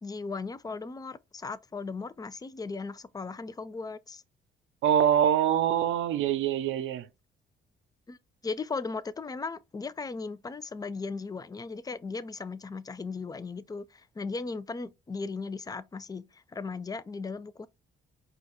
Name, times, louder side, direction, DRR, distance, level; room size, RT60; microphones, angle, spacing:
voice 1, 0.0-4.2 8.1-8.2 8.4-17.7, left 4 dB, 20° left, 0.4 m, -37 dB
voice 2, 4.8-7.1, right 10 dB, 80° right, 0.6 m, -24 dB
4.9 x 2.3 x 4.1 m
cardioid pair, 90°, 20 cm